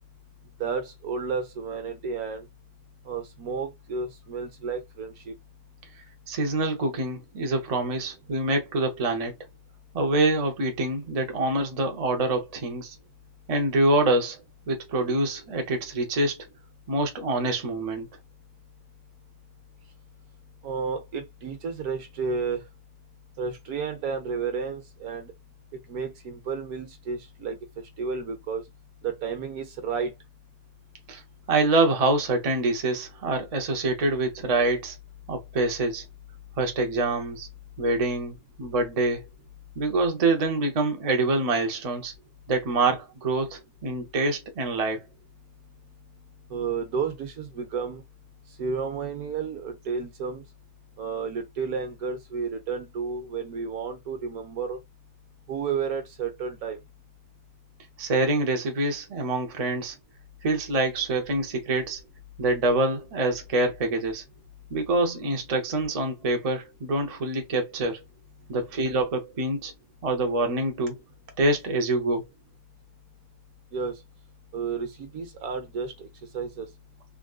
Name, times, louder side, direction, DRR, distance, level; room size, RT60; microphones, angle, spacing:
voice 1, 0.6-2.5 3.1-5.3 20.6-22.6 23.4-25.3 25.9-27.6 28.0-28.6 29.0-30.1 46.5-48.0 48.6-50.4 51.0-54.8 55.5-56.8 73.7-73.9 74.5-76.1 76.3-76.7, right 5 dB, 70° right, 1.3 m, -31 dB
voice 2, 6.3-9.3 9.9-12.9 13.5-14.4 14.7-16.4 16.9-18.1 31.1-31.2 31.5-35.0 35.3-36.0 36.6-37.5 37.8-39.2 39.8-42.1 42.5-45.0 58.0-59.9 60.4-62.0 62.4-64.2 64.7-68.0 68.5-69.7 70.0-71.0 71.4-72.2, right 2 dB, 35° right, 0.6 m, -25 dB
3.6 x 2.5 x 2.3 m
omnidirectional pair, 1.6 m